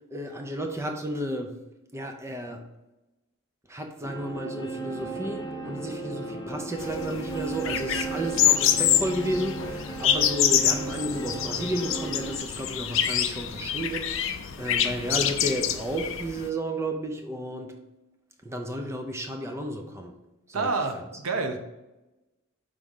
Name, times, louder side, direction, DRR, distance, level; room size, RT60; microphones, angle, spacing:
voice 1, 0.1-1.6 1.9-2.6 3.7-17.7 18.4-20.1 20.5-21.0, right 1 dB, 15° right, 4 dB, 0.5 m, -32 dB
sound 1, 4.0-12.4, right 3 dB, 20° left, 0.8 m, -35 dB
sound 2, 6.8-16.5, left 10 dB, 60° left, 0.5 m, -26 dB
voice 2, 20.5-21.6, right 3 dB, 80° right, 5 dB, 0.8 m, -28 dB
5.2 x 3.6 x 5.3 m, 1.0 s
head